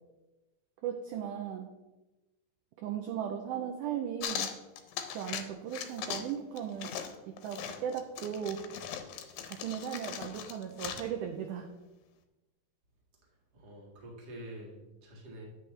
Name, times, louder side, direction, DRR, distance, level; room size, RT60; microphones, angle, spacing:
voice 1, 0.8-1.7 2.8-4.5 5.1-6.9 7.3-8.6 9.4-11.7, right 9 dB, 80° right, 3 dB, 1.8 m, -37 dB
sound 1, 4.2-5.5 5.7-6.3 6.6-11.1, left 9 dB, 80° left, 2.4 m, -39 dB
voice 2, 13.5-15.4, right 1 dB, 35° right, -3 dB, 1.7 m, -47 dB
9.5 x 8.1 x 3.2 m, 1.1 s
omnidirectional pair, 4.2 m